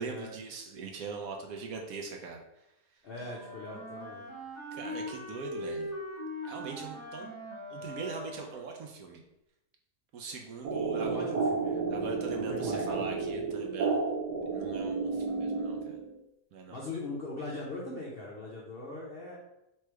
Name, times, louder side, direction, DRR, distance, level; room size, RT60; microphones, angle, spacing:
voice 1, 0.0-2.4 4.7-5.9 6.4-7.4 7.7-9.2 10.1-11.2 11.9-14.0 14.5-16.0 16.5-16.8, right 4 dB, 70° right, 2 dB, 1.0 m, -41 dB
voice 2, 3.0-4.2 11.0-13.0 16.7-19.4, left 2 dB, 55° left, -4 dB, 0.6 m, -41 dB
Wind instrument woodwind instrument, 3.2-8.6, left 1 dB, 20° right, 1.1 m, -41 dB
sound 1, 10.6-16.2, right 4 dB, 90° right, 1.3 m, -32 dB
3.3 x 3.1 x 4.5 m, 0.88 s
omnidirectional pair, 1.7 m